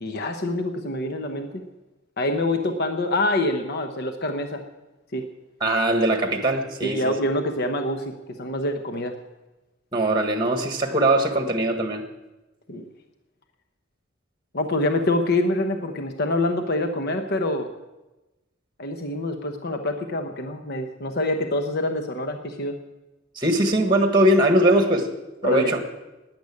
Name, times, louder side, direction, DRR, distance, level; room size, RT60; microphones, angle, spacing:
voice 1, 0.0-1.6 2.2-4.6 5.1-5.3 6.8-9.2 12.7-12.9 14.5-17.7 18.8-22.8 25.4-25.8, left 1 dB, 55° left, 5 dB, 1.0 m, -26 dB
voice 2, 5.6-7.0 9.9-12.0 23.3-25.1 25.4-25.8, right 1 dB, 25° right, 5 dB, 1.5 m, -20 dB
13.0 x 10.0 x 8.4 m, 1.1 s
head